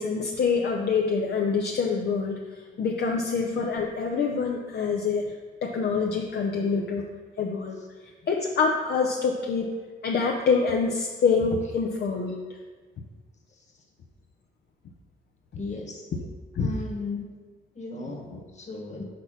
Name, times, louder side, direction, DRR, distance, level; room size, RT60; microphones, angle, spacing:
voice 1, 0.0-2.4 2.8-5.2 5.6-7.0 7.4-7.8 8.3-9.7 10.0-12.4 16.5-16.7, left 5 dB, 55° left, 0 dB, 0.7 m, -25 dB
voice 2, 15.6-16.0 16.6-17.2 17.7-19.0, left 3 dB, 35° left, 1 dB, 1.6 m, -36 dB
6.1 x 4.4 x 5.7 m, 1.4 s
cardioid pair, 90°, 20 cm